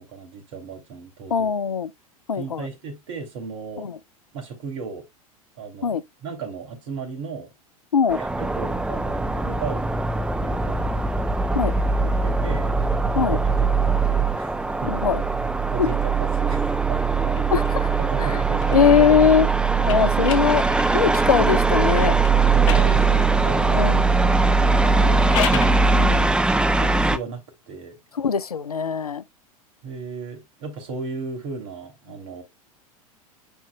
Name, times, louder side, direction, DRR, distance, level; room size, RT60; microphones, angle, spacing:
voice 1, 0.0-1.5 2.4-3.9 4.3-5.0 5.5-7.5 8.1-11.0 12.0-12.7 13.3-13.7 14.0-15.0 15.7-17.4 18.0-18.9 19.8-19.9 22.6-26.0 26.6-28.0 29.8-32.4, right 4 dB, 55° right, 3.1 m, -36 dB
voice 2, 1.3-1.9 2.3-2.7 3.8-3.9 5.8-6.0 7.9-8.2 11.5-11.7 13.2-13.4 14.9-15.2 15.8-15.9 17.5-17.9 18.2-18.3 18.7-19.5 19.9-20.6 20.9-22.2 23.7-24.0 26.0-26.2 28.2-29.2, left 7 dB, 85° left, 0.5 m, -20 dB
sound 1, 8.1-27.2, right 4 dB, 5° right, 0.7 m, -21 dB
sound 2, 17.3-21.3 22.2-23.6 25.0-25.8, left 9 dB, 55° left, 1.1 m, -34 dB
9.9 x 4.3 x 2.3 m
figure-of-eight pair, 85°, 19 cm